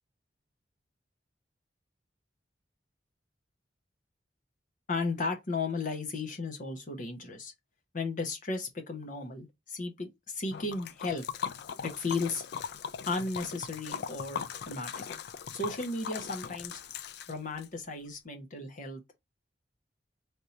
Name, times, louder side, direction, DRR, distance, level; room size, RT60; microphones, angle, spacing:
voice 1, 4.9-7.5 7.9-11.2 11.8-12.5 13.1-14.9 15.5-16.8 17.3-19.2, left 3 dB, 45° left, 1.0 m, -35 dB
Liquid, 10.5-17.7, left 7 dB, 65° left, 0.4 m, -39 dB
3.5 x 2.8 x 4.2 m
head